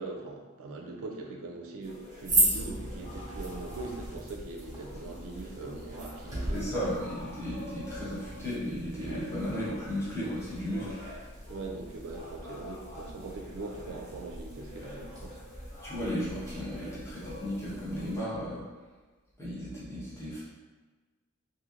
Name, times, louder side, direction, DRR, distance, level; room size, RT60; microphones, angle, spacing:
voice 1, 0.0-6.7 10.8-11.0 11.5-15.4, right 3 dB, 65° right, 1 dB, 0.4 m, -41 dB
sound 1, 1.8-18.2, left 1 dB, 30° left, 1.4 m, -47 dB
sound 2, 2.2-18.0, right 1 dB, 15° right, 0.6 m, -37 dB
voice 2, 6.5-11.0 15.8-18.6 19.4-20.4, equal, 10° left, -10 dB, 1.0 m, -35 dB
3.1 x 2.6 x 2.4 m, 1.3 s
head